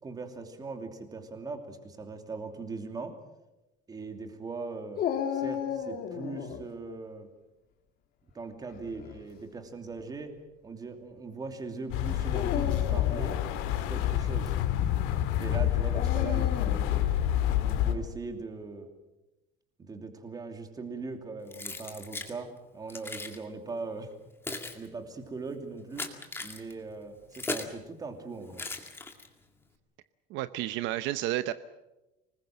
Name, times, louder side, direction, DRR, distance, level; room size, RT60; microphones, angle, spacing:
voice 1, 0.0-3.2 3.9-5.0 5.3-7.3 8.3-10.3 10.6-13.4 13.9-14.5 15.4-17.1 17.7-18.9 19.8-24.1 24.7-26.1 26.4-28.6, right 3 dB, 20° right, 6 dB, 2.8 m, -40 dB
Dog, 5.0-6.6 8.7-9.2 10.0-10.1 12.2-13.5 15.9-16.9, left 8 dB, 45° left, 2.6 m, -34 dB
sound 1, 11.9-17.9, left 12 dB, 80° left, 2.7 m, -28 dB
Keys jangling, 21.5-22.3 22.9-23.4 24.1-27.8 28.5-29.5, left 3 dB, 10° left, 2.1 m, -38 dB
voice 2, 30.3-31.5, right 15 dB, 65° right, 13 dB, 0.8 m, -31 dB
25.0 x 20.5 x 7.6 m, 1.0 s
cardioid pair, 165°, 21 cm